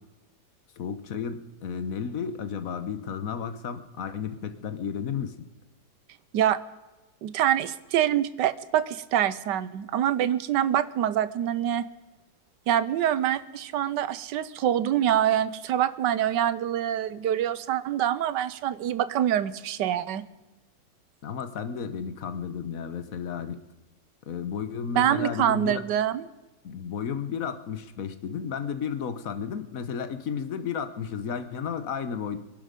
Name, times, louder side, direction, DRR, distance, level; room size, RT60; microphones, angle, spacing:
voice 1, 0.8-5.4 21.2-23.6 24.3-25.8 26.6-32.4, left 7 dB, 55° left, 10 dB, 1.4 m, -33 dB
voice 2, 7.2-11.9 12.7-20.2 24.9-26.3, right 11 dB, 85° right, 16 dB, 1.4 m, -25 dB
23.0 x 11.5 x 5.2 m, 1.1 s
omnidirectional pair, 1.8 m